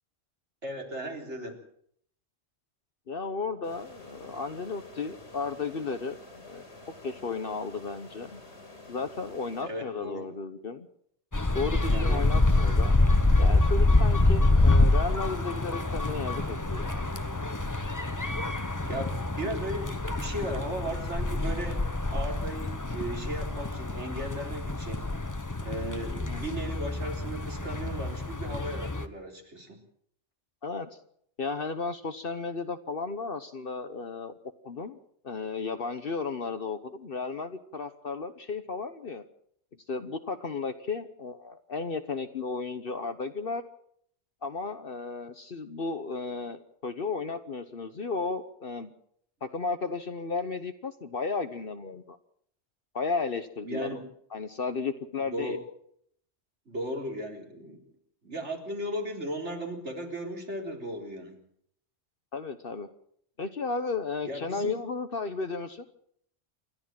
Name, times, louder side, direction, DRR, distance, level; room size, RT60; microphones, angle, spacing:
voice 1, 0.6-1.6 9.6-10.3 11.9-12.3 18.8-21.8 22.1-25.1 25.6-29.8 53.6-54.0 55.2-55.6 56.7-57.8 58.2-61.4 64.2-64.8, right 1 dB, 80° right, 2 dB, 4.2 m, -36 dB
voice 2, 3.1-6.6 7.0-8.4 8.9-10.9 11.5-13.0 13.4-17.0 26.1-26.4 30.6-31.0 31.4-34.3 34.6-35.0 35.2-39.2 39.9-43.6 44.4-48.9 49.4-52.2 52.9-54.0 54.3-55.6 62.3-62.9 63.4-65.8, left 4 dB, 55° left, 9 dB, 1.2 m, -34 dB
sound 1, 3.6-10.3, left 2 dB, 75° left, 5.1 m, -49 dB
sound 2, 11.3-29.1, left 2 dB, 15° left, 1.0 m, -26 dB
28.0 x 12.0 x 7.6 m, 0.67 s
omnidirectional pair, 1.2 m